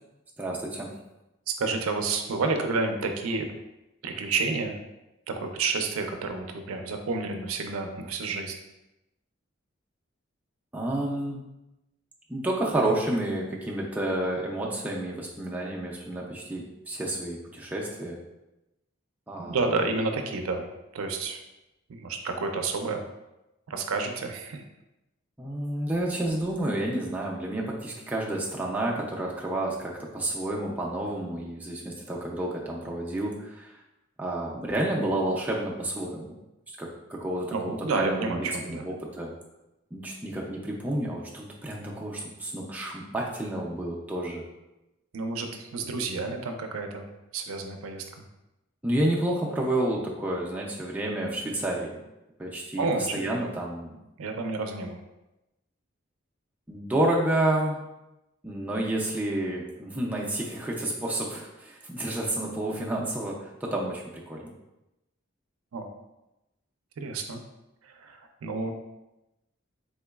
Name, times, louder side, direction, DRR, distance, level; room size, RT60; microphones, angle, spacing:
voice 1, 0.4-0.9 10.7-11.4 12.3-18.2 19.3-19.6 25.4-33.8 34.2-36.3 36.7-39.3 39.9-44.4 48.8-52.0 52.4-54.0 56.7-57.8 58.4-64.5, right 1 dB, 10° right, -3 dB, 0.3 m, -30 dB
voice 2, 1.5-3.5 4.0-4.8 5.3-8.5 19.4-20.7 20.9-21.4 21.9-23.0 23.7-24.6 37.5-38.9 45.1-48.0 52.8-53.4 54.2-55.0 65.7-65.9 67.0-67.4 67.8-68.7, right 3 dB, 85° right, 5 dB, 0.4 m, -30 dB
3.7 x 2.9 x 2.3 m, 0.96 s
head